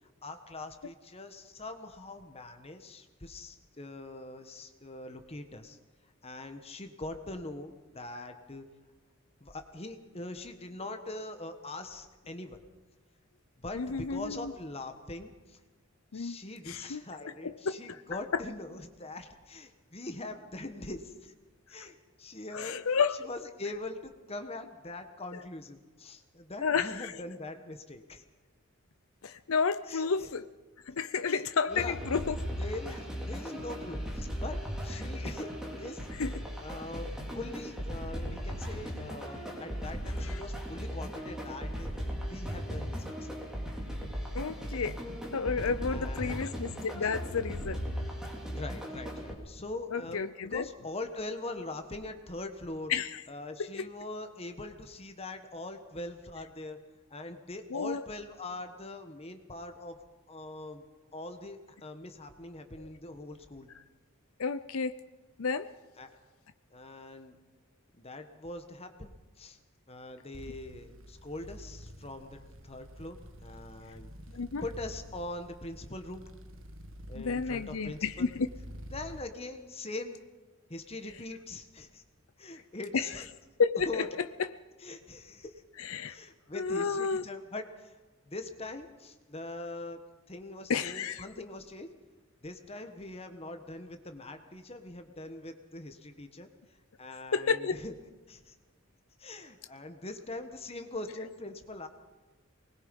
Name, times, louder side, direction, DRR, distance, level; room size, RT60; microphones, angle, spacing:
voice 1, 0.2-5.8 6.2-8.6 9.4-12.6 13.6-15.6 16.1-21.3 21.7-22.8 23.2-28.2 29.9-30.3 31.3-32.0 32.6-35.5 35.8-36.1 36.6-41.9 42.3-43.3 45.9-46.6 48.5-50.2 50.5-52.9 53.3-56.8 57.1-60.0 60.3-60.8 61.1-63.7 66.0-66.2 66.7-67.4 67.9-69.6 69.9-72.4 72.6-74.1 74.6-76.3 77.1-78.3 78.9-80.2 80.7-82.0 82.4-83.2 83.8-84.1 84.8-85.6 86.1-87.9 88.2-90.0 90.3-92.0 92.4-96.5 97.0-97.9 98.3-98.5 99.2-101.9, left 2 dB, 30° left, 7 dB, 1.4 m, -42 dB
voice 2, 13.7-14.5 16.1-17.0 17.4-17.8 18.3-18.4 22.5-23.3 26.6-27.1 29.2-30.5 30.9-32.3 36.2-36.3 40.2-40.4 44.3-45.0 45.3-47.8 49.9-50.7 52.9-53.2 53.6-53.9 57.7-58.0 62.8-62.9 64.4-65.0 65.4-65.7 74.3-74.6 77.1-78.5 82.9-83.1 83.6-84.0 85.8-86.2 86.5-87.2 90.7-91.3 97.3-97.8, left 5 dB, 75° left, 11 dB, 0.6 m, -31 dB
sound 1, 31.7-49.3, equal, 5° right, 3.8 m, -37 dB
sound 2, 70.3-79.2, equal, 65° right, 1.6 m, -48 dB
24.0 x 21.0 x 5.4 m, 1.3 s
head